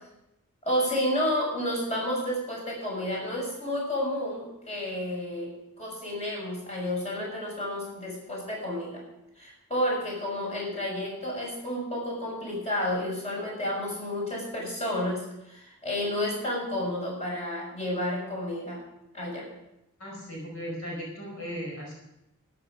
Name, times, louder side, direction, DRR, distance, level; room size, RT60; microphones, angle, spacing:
voice 1, 0.6-5.5 5.8-9.0 9.4-18.8 19.1-19.5, left 1 dB, 30° left, -3 dB, 6.7 m, -31 dB
voice 2, 20.0-21.9, equal, 70° left, -1 dB, 4.9 m, -37 dB
13.5 x 11.0 x 6.3 m, 0.87 s
head